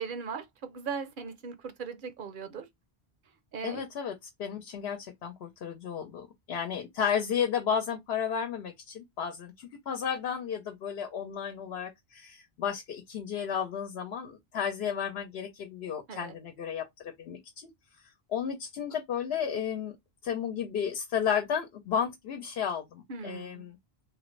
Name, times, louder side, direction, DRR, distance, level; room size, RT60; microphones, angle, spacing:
voice 1, 0.0-2.7 3.5-3.8 16.1-16.3 23.1-23.7, right 5 dB, 60° right, 0.7 m, -38 dB
voice 2, 3.6-17.7 18.3-19.9 20.2-23.8, left 7 dB, 80° left, 0.9 m, -33 dB
3.2 x 2.5 x 3.1 m
omnidirectional pair, 1.0 m